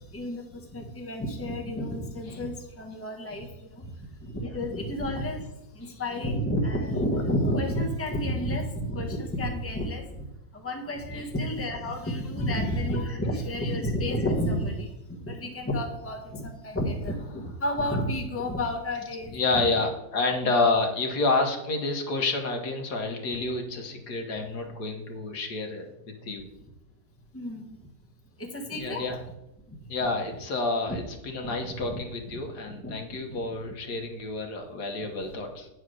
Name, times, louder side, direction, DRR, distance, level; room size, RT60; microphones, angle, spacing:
voice 1, 0.1-0.4 0.7-3.5 3.8-3.9 4.2-5.5 5.8-10.3 10.5-14.9 15.3-19.6 27.3-27.7 28.4-29.1 30.9-31.0 31.4-32.0 32.8-32.9 33.3-33.5, equal, 10° left, 1 dB, 1.1 m, -30 dB
voice 2, 19.3-25.9 26.2-26.5 28.8-29.2 29.9-35.7, left 3 dB, 80° left, 3 dB, 1.8 m, -29 dB
9.2 x 4.9 x 6.3 m, 0.90 s
omnidirectional pair, 1.7 m